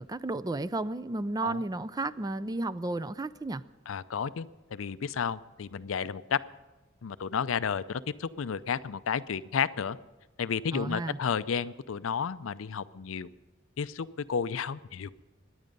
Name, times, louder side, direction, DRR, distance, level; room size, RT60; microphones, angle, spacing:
voice 1, 0.0-3.6 10.7-11.2, right 2 dB, 20° right, 15 dB, 0.4 m, -33 dB
voice 2, 3.9-6.4 7.0-10.0 10.4-13.3 13.8-15.1, left 6 dB, 80° left, 15 dB, 0.5 m, -32 dB
23.5 x 9.7 x 5.3 m, 1.1 s
head